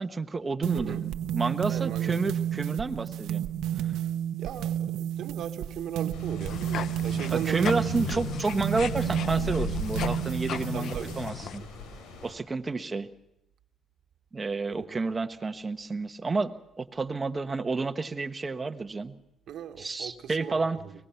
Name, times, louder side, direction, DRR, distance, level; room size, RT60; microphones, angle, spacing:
voice 1, 0.0-3.5 7.3-11.6 12.2-13.1 14.3-19.2 19.8-20.8, right 3 dB, 30° right, 8 dB, 1.2 m, -30 dB
sound 1, 0.6-11.3, right 11 dB, 90° right, 1.0 m, -31 dB
voice 2, 1.7-2.2 4.4-8.2 10.6-11.5 14.7-14.9 19.5-20.9, right 9 dB, 70° right, 8 dB, 1.4 m, -38 dB
sound 2, 6.1-12.3, left 3 dB, 90° left, 3.7 m, -40 dB
sound 3, 6.4-11.6, left 9 dB, 70° left, 0.8 m, -36 dB
24.0 x 19.0 x 5.8 m, 0.81 s
cardioid pair, 90°, 0 cm